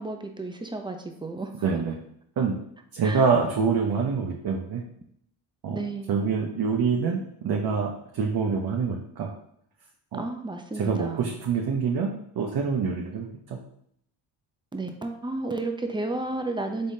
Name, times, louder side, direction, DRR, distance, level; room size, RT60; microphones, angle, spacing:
voice 1, 0.0-1.5 3.0-3.3 5.7-6.3 10.1-11.4 14.7-16.9, right 2 dB, 10° right, 5 dB, 0.5 m, -32 dB
voice 2, 1.6-2.0 2.4-2.6 2.9-4.8 5.6-5.8 6.1-9.3 10.1-10.2 10.8-12.1 12.4-13.6, right 5 dB, 50° right, 0 dB, 0.7 m, -26 dB
4.3 x 3.5 x 2.7 m, 0.69 s
cardioid pair, 75°, 49 cm